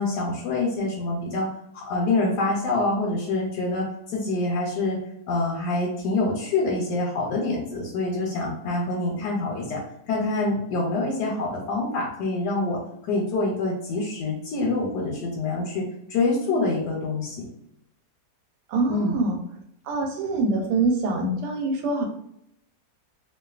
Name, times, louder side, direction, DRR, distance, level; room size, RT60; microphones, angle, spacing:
voice 1, 0.0-1.5 1.7-3.9 4.1-5.0 5.3-9.8 10.1-12.8 13.0-17.4 18.9-19.2, left 2 dB, 85° left, -2 dB, 1.2 m, -26 dB
voice 2, 18.7-19.4 19.9-22.1, right 3 dB, 90° right, 3 dB, 1.2 m, -24 dB
2.7 x 2.2 x 2.3 m, 0.76 s
omnidirectional pair, 1.7 m